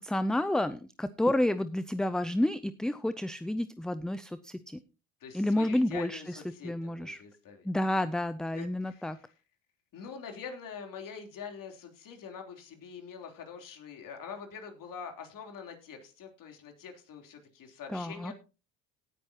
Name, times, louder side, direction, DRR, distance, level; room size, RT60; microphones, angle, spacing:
voice 1, 0.0-4.8 5.3-7.2 7.6-9.2 17.9-18.3, left 1 dB, ahead, 14 dB, 0.5 m, -30 dB
voice 2, 5.2-7.7 8.5-9.3 9.9-18.3, left 6 dB, 55° left, 4 dB, 3.5 m, -45 dB
18.0 x 8.7 x 2.9 m, 0.33 s
supercardioid pair, 75°, 38 cm